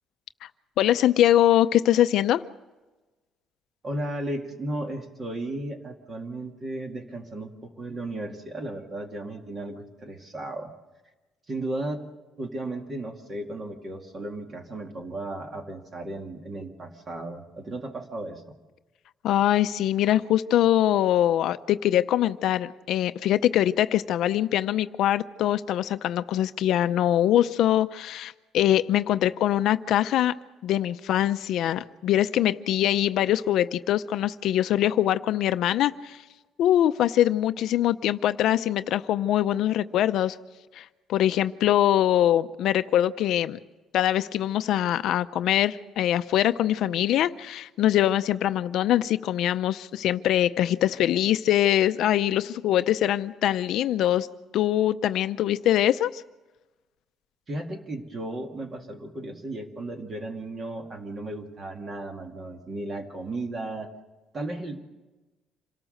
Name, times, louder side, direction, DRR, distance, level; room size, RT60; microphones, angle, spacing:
voice 1, 0.8-2.4 19.2-30.3 30.6-36.2 36.6-40.4 40.7-40.8 41.1-43.6 43.9-54.3 54.5-56.2, left 12 dB, 60° left, 12 dB, 0.6 m, -23 dB
voice 2, 3.8-10.7 11.5-12.1 12.4-18.5 57.5-63.9 64.3-64.8, right 1 dB, 25° right, 4 dB, 2.1 m, -35 dB
27.0 x 18.0 x 6.5 m, 1.2 s
cardioid pair, 180°, 0 cm